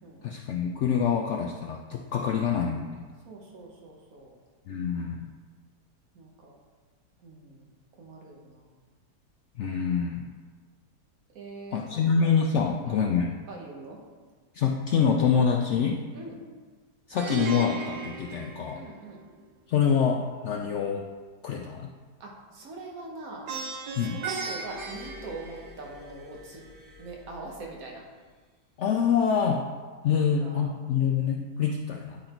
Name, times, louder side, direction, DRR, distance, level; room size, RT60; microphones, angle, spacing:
voice 1, 0.2-3.1 4.7-5.3 9.6-10.3 11.7-13.4 14.5-16.0 17.1-18.8 19.7-21.1 21.4-21.9 24.0-24.2 28.8-29.7 30.0-32.2, left 6 dB, 90° left, 1 dB, 0.6 m, -26 dB
voice 2, 3.2-4.3 6.1-6.6 7.2-7.7 8.0-8.7 11.3-12.0 12.5-13.1 13.5-14.0 16.1-16.4 18.8-19.3 22.2-23.5 24.0-26.6 27.0-28.0 30.1-30.7, right 3 dB, 60° right, -1 dB, 1.6 m, -43 dB
Plucked string instrument, 17.2-19.3 23.5-26.1, right 4 dB, 85° right, 1.4 m, -36 dB
Glass, 24.5-28.1 29.1-29.3, left 2 dB, 30° right, 1.8 m, -50 dB
9.9 x 3.9 x 4.4 m, 1.4 s
omnidirectional pair, 1.8 m